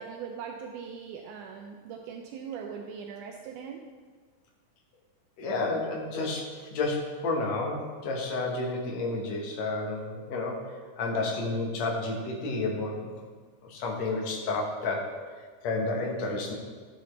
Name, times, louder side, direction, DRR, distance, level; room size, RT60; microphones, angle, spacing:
voice 1, 0.0-3.8, right 6 dB, 80° right, 3 dB, 2.0 m, -40 dB
voice 2, 5.4-10.6 11.0-13.1 13.6-15.0 15.6-16.5, left 3 dB, 60° left, 0 dB, 2.3 m, -31 dB
13.0 x 6.8 x 3.2 m, 1.5 s
omnidirectional pair, 3.7 m